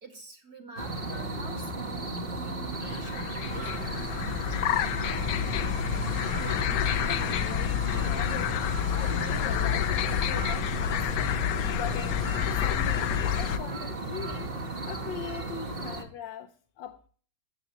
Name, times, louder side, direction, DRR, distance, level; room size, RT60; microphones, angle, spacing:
voice 1, 0.0-4.4, right 2 dB, 55° right, 2.5 m, -47 dB
sound 1, 0.8-16.0, right 2 dB, 35° right, 1.3 m, -35 dB
sound 2, 2.7-13.6, left 11 dB, 70° left, 0.9 m, -29 dB
sound 3, 3.4-5.5 6.0-11.1 11.7-13.3 13.6-15.6, right 3 dB, 85° right, 5.5 m, -47 dB
voice 2, 6.2-6.7 6.9-8.6 8.9-12.2 12.5-14.5 14.8-17.1, left 7 dB, 85° left, 1.5 m, -41 dB
14.0 x 8.0 x 3.0 m
omnidirectional pair, 1.9 m